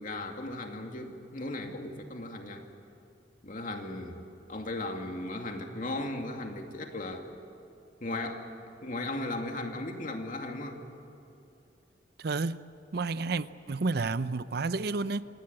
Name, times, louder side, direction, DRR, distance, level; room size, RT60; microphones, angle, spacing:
voice 1, 0.0-2.6 3.4-4.2 4.5-7.3 8.0-8.5 8.8-10.8, left 2 dB, 50° left, 2.4 m, -36 dB
voice 2, 12.2-12.6 12.9-15.2, right 3 dB, 65° right, 0.6 m, -30 dB
27.0 x 17.5 x 8.8 m
head